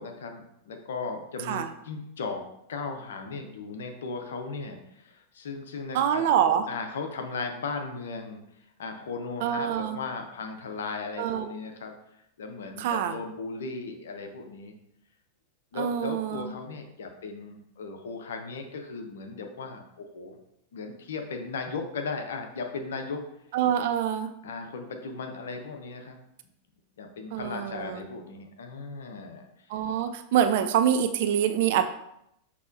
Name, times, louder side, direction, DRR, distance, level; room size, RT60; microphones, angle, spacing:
voice 1, 0.0-2.4 2.7-6.2 6.7-8.4 8.8-14.7 15.7-20.4 20.7-23.2 24.4-26.2 27.0-29.5 29.8-29.9, left 4 dB, 60° left, 4 dB, 0.7 m, -37 dB
voice 2, 5.9-6.7 9.4-10.0 11.2-11.5 12.8-13.1 15.7-16.5 23.5-24.3 27.3-28.0 29.7-31.8, right 9 dB, 50° right, 9 dB, 0.4 m, -25 dB
6.1 x 2.9 x 2.6 m, 0.77 s
figure-of-eight pair, 90°, 0 cm